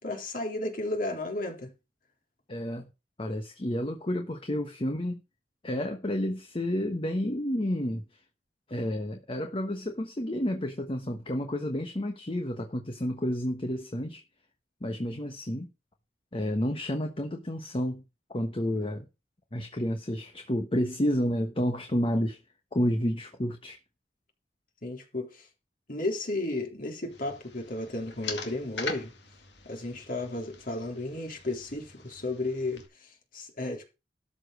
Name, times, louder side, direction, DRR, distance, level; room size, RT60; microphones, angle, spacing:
voice 1, 0.0-1.7 24.8-25.5 25.9-29.1 29.7-33.8, left 2 dB, 55° left, 3.5 m, -33 dB
voice 2, 2.5-2.9 3.2-5.2 5.6-8.0 8.7-14.2 14.8-15.7 16.3-18.0 18.3-19.0 19.5-22.4 22.7-23.8, equal, 30° left, 1.1 m, -30 dB
sound 1, 27.1-32.9, left 5 dB, 75° left, 2.3 m, -42 dB
13.0 x 5.1 x 6.3 m
head